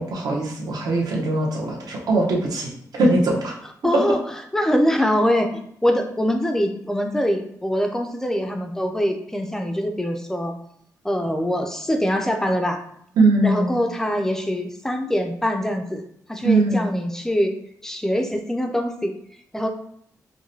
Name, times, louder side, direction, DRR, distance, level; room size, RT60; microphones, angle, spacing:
voice 1, 0.0-2.7 3.0-3.5 13.2-13.8 16.4-16.8, right 2 dB, 70° right, -1 dB, 0.8 m, -20 dB
voice 2, 3.8-4.2 4.5-10.5 11.0-12.8 13.4-16.0 16.3-17.5 17.8-19.1 19.5-19.7, equal, 5° left, 4 dB, 0.3 m, -23 dB
4.6 x 2.1 x 2.7 m, 0.68 s
wide cardioid pair, 170°, 7 cm